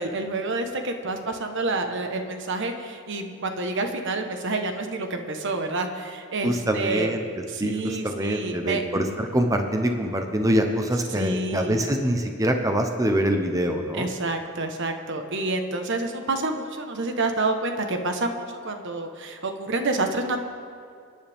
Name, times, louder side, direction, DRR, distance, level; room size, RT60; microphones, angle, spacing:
voice 1, 0.0-7.1 7.5-8.8 11.1-11.8 13.9-20.4, right 2 dB, 60° right, 5 dB, 1.3 m, -28 dB
voice 2, 6.4-7.2 7.6-14.1, right 1 dB, 15° right, 4 dB, 0.8 m, -24 dB
29.5 x 9.9 x 3.6 m, 2.2 s
head